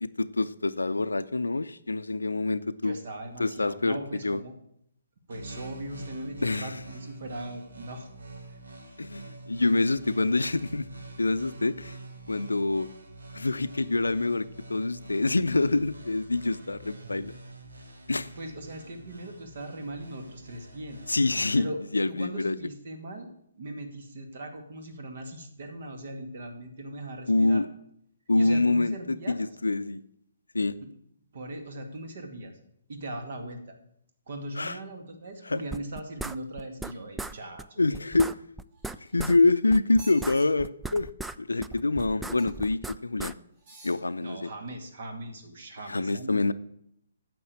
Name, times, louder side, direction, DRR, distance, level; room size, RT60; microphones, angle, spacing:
voice 1, 0.0-3.0 3.4-4.0 4.2-4.4 6.4-6.8 9.0-10.9 11.2-12.0 12.3-12.9 13.3-17.3 18.1-18.3 21.1-22.6 27.3-27.7 28.3-30.0 30.5-30.8 34.6-34.8 35.5-35.6 37.8-38.4 39.1-41.1 41.4-43.3 43.8-44.5 45.9-46.5, left 3 dB, 75° left, 14 dB, 0.6 m, -26 dB
voice 2, 2.8-4.5 5.3-8.1 8.5-8.6 18.2-21.0 21.6-21.8 22.1-23.3 23.6-27.6 28.3-29.4 31.3-32.5 32.9-33.6 34.3-38.1 44.2-46.5, right 1 dB, 50° right, 6 dB, 2.3 m, -39 dB
sound 1, 5.3-21.7, right 2 dB, 70° right, 1.9 m, -46 dB
sound 2, 35.7-36.9 37.2-37.3 37.6-37.7 37.9-39.4 39.7-41.4 41.6-43.3, right 3 dB, 5° right, 0.3 m, -37 dB
sound 3, 38.7-39.4 39.9-40.5 42.4-42.7 43.6-44.0 44.7-44.8, right 3 dB, 35° right, 3.9 m, -49 dB
9.7 x 6.9 x 8.6 m, 0.74 s
figure-of-eight pair, 130°, 0 cm